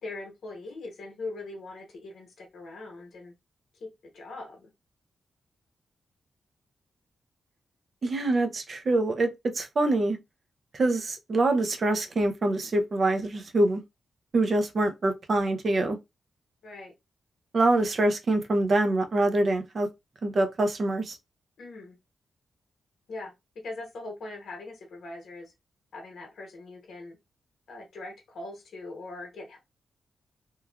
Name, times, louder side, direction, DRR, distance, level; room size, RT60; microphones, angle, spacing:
voice 1, 0.0-3.3 3.8-3.9 4.1-4.7 16.6-16.9 21.6-21.9 23.1-23.3 23.6-25.5 25.9-27.2 27.7-29.6, left 2 dB, 70° left, 0.9 m, -41 dB
voice 2, 8.0-9.3 9.5-10.2 10.7-13.8 14.3-16.0 17.5-19.9 20.2-21.2, right 2 dB, 40° right, 0.4 m, -25 dB
3.0 x 2.3 x 2.2 m
wide cardioid pair, 155°, 0 cm